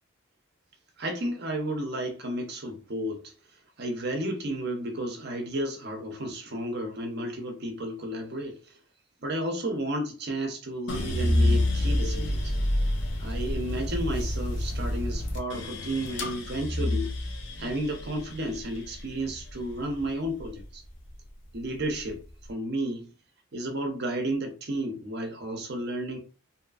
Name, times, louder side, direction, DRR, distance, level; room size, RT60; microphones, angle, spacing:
voice 1, 1.0-3.3 3.8-8.6 9.2-12.5 13.2-17.2 17.6-20.8 21.5-22.2 22.5-23.1 23.5-26.2, right 1 dB, 50° right, 0.6 m, -32 dB
sound 1, 10.9-21.1 21.5-22.3, left 1 dB, 55° left, 0.5 m, -29 dB
2.6 x 2.4 x 2.3 m
head